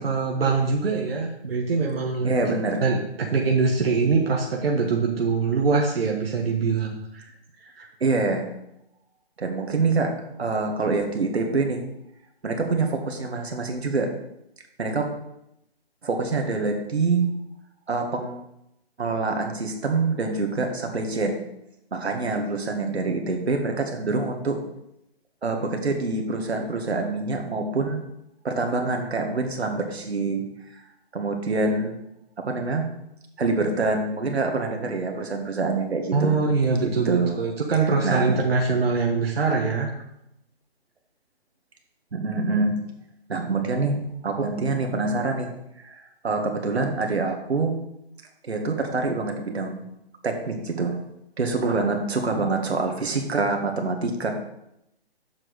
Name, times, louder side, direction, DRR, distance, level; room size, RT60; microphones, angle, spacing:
voice 1, 0.0-2.5 2.8-7.2 7.6-7.9 36.1-39.9, right 4 dB, 65° right, 0 dB, 1.3 m, -23 dB
voice 2, 2.2-2.8 8.0-8.5 9.4-11.8 12.4-14.1 14.8-15.1 16.0-17.3 17.9-18.4 19.0-21.4 21.9-24.6 25.4-28.1 28.4-30.4 30.7-30.8 31.1-32.0 32.4-32.9 33.4-36.4 36.8-37.4 38.0-38.3 42.1-42.8 43.3-45.5 45.8-47.7 48.4-49.9 50.2-51.0 51.4-54.3, right 3 dB, 80° right, 3 dB, 1.8 m, -26 dB
7.5 x 6.2 x 4.7 m, 0.81 s
hypercardioid pair, 160°, 32 cm